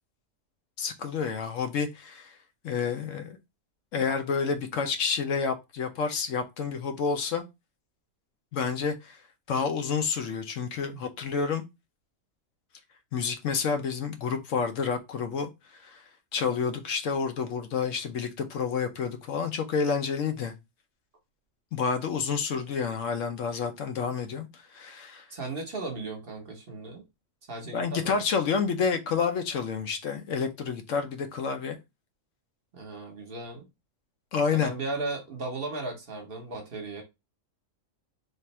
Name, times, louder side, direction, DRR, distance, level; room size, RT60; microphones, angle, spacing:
voice 1, 0.8-2.3 2.6-3.4 3.9-7.4 8.5-9.2 9.5-11.6 13.1-15.5 15.8-16.0 16.3-20.5 21.7-24.5 24.7-25.2 27.6-31.8 34.3-34.7, left 6 dB, 75° left, 1.0 m, -29 dB
voice 2, 25.3-27.1 27.5-28.2 32.7-33.6 34.5-37.0, right 2 dB, 50° right, 1.1 m, -36 dB
3.4 x 2.5 x 4.2 m
omnidirectional pair, 1.4 m